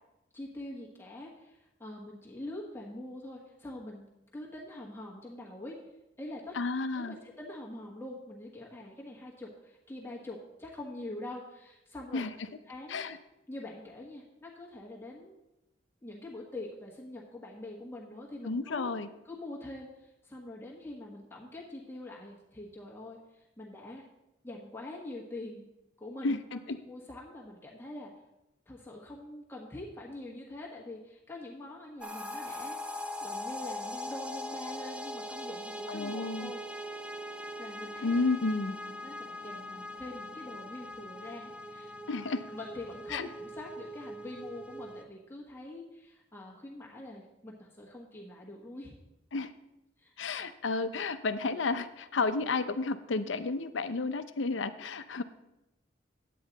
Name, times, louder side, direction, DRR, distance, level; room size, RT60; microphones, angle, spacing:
voice 1, 0.3-4.1 4.3-5.8 6.2-6.6 6.9-13.0 13.5-15.3 16.0-18.9 19.2-24.1 24.4-25.6 26.0-26.3 26.8-28.1 28.7-36.6 37.6-38.2 38.9-41.9 42.5-48.9 50.0-50.4, left 1 dB, 15° left, -3 dB, 1.3 m, -44 dB
voice 2, 6.5-7.2 12.1-12.3 12.9-13.2 18.4-19.1 26.2-26.8 35.9-36.5 38.0-38.8 42.1-42.4 43.1-43.3 49.3-49.5 50.2-55.2, left 3 dB, 85° left, 11 dB, 0.6 m, -32 dB
sound 1, 32.0-45.0, left 1 dB, 5° right, 0.4 m, -41 dB
10.0 x 8.5 x 4.0 m, 0.92 s
head